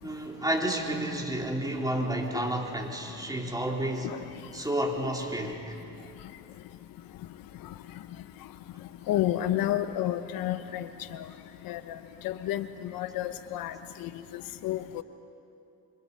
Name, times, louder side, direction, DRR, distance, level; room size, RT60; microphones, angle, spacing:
voice 1, 0.0-4.1 4.5-5.8, right 1 dB, 10° right, 0 dB, 3.9 m, -31 dB
voice 2, 9.1-11.2 11.6-12.0 12.2-13.7 14.0-15.0, left 13 dB, 75° left, 11 dB, 1.0 m, -31 dB
26.5 x 25.0 x 5.7 m, 2.7 s
supercardioid pair, 75°, 35 cm